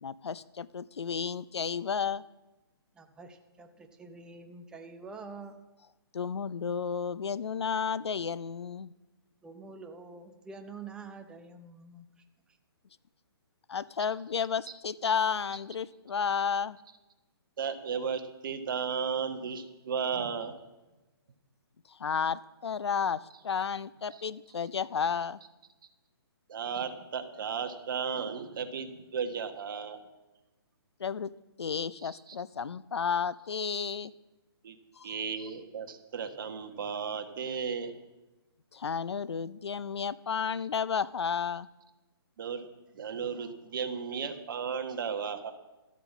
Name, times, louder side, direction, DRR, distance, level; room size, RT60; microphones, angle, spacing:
voice 1, 0.0-2.2 6.1-8.9 13.7-16.8 21.9-25.4 31.0-34.1 35.0-35.2 38.7-41.7, left 6 dB, 85° left, 19 dB, 0.5 m, -32 dB
voice 2, 3.0-5.6 9.4-12.1, right 4 dB, 5° right, 5 dB, 0.6 m, -46 dB
voice 3, 17.6-20.5 24.1-24.2 26.5-30.0 32.0-32.1 34.6-34.8 35.0-37.9 42.4-42.6 42.9-45.5, right 6 dB, 55° right, 7 dB, 1.4 m, -34 dB
13.0 x 8.3 x 7.3 m, 1.1 s
hypercardioid pair, 150°, 13 cm